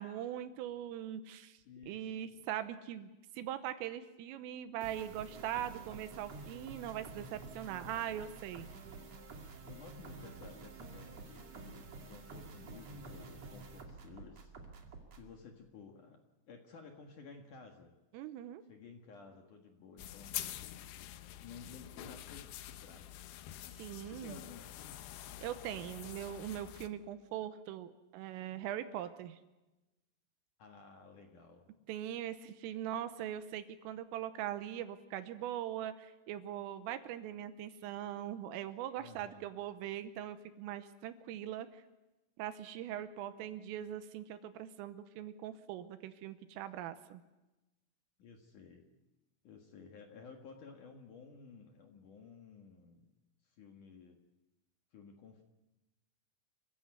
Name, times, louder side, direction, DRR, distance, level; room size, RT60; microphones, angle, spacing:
voice 1, 0.0-1.6 1.9-8.7 18.1-18.6 23.8-24.4 25.4-29.4 31.9-41.7 42.4-47.2, right 11 dB, 80° right, 11 dB, 3.5 m, -41 dB
voice 2, 1.6-2.4 7.8-8.0 9.6-14.5 15.2-16.2 16.5-17.9 18.7-20.3 21.4-23.2 24.1-25.0 30.6-31.7 38.9-39.5 48.2-48.8 49.4-53.1 53.4-54.2 54.9-55.4, left 5 dB, 60° left, 3 dB, 2.3 m, -54 dB
sound 1, 4.8-15.3, right 3 dB, 40° right, 2.8 m, -50 dB
sound 2, 20.0-26.9, left 13 dB, 80° left, 2.5 m, -46 dB
27.0 x 15.5 x 9.3 m, 1.0 s
omnidirectional pair, 5.9 m